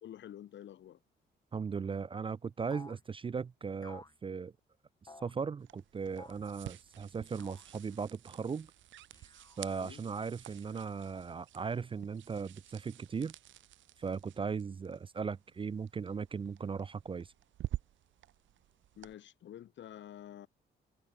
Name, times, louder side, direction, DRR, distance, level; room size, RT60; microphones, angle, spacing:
voice 1, 0.0-1.0 9.8-10.0 19.0-20.5, left 11 dB, 65° left, 1.9 m, -49 dB
voice 2, 1.5-4.5 5.2-8.7 9.6-13.3 14.0-17.3, right 5 dB, 25° right, 0.4 m, -38 dB
sound 1, 2.7-3.0 3.8-4.2 5.1-5.4 6.2-6.5 7.4-7.7 9.1-9.6 10.5-11.2, left 3 dB, 20° left, 2.9 m, -54 dB
sound 2, 5.6-19.1, right 13 dB, 70° right, 0.8 m, -49 dB
cardioid pair, 90°, 20 cm